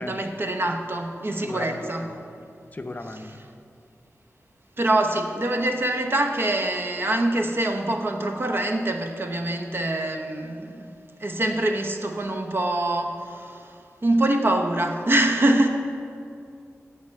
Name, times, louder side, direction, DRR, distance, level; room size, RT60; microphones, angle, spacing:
voice 1, 0.0-2.2 3.1-3.4 4.8-10.9 11.2-13.6 14.0-15.7, right 1 dB, 45° right, 4 dB, 0.9 m, -24 dB
voice 2, 1.4-1.9 2.7-3.3, left 2 dB, 30° left, 5 dB, 0.7 m, -35 dB
9.6 x 5.7 x 8.4 m, 2.4 s
wide cardioid pair, 105°, 5 cm